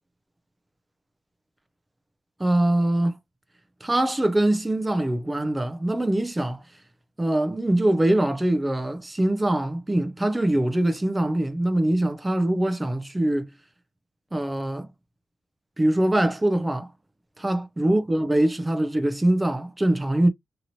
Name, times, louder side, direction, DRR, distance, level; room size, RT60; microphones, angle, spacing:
voice 1, 2.4-3.1 3.8-6.6 7.2-13.5 14.3-14.9 15.8-16.9 17.4-20.3, right 1 dB, 10° right, 0.5 m, -23 dB
2.9 x 2.8 x 2.7 m
wide cardioid pair, 175°, 0 cm